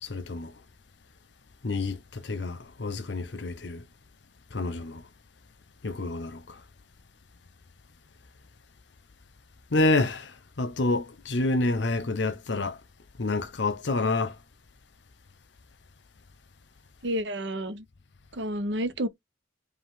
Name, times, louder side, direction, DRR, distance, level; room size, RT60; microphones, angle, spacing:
voice 1, 0.0-0.5 1.6-3.8 4.5-5.0 5.8-6.6 9.7-12.8 13.2-14.4, left 2 dB, 70° left, 0.8 m, -28 dB
voice 2, 17.0-17.9 18.3-19.1, equal, 65° right, 0.8 m, -30 dB
5.3 x 2.5 x 3.6 m
head